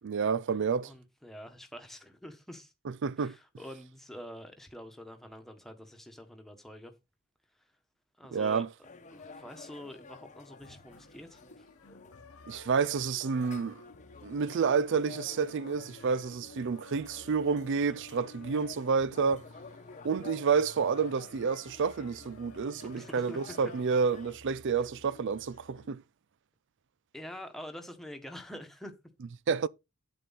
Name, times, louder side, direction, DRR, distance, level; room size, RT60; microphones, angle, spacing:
voice 1, 0.0-0.9 2.9-3.4 8.3-8.7 12.5-13.8 14.2-19.4 20.0-26.0 29.5-29.7, right 5 dB, 55° right, 0.4 m, -29 dB
voice 2, 0.8-2.7 3.2-6.9 8.2-8.7 9.1-11.7 23.0-23.4 27.1-28.9, equal, ahead, 1.4 m, -46 dB
sound 1, 8.8-24.4, left 4 dB, 35° left, 1.0 m, -51 dB
sound 2, 10.6-25.9, left 3 dB, 75° left, 1.1 m, -54 dB
8.4 x 7.8 x 4.1 m
head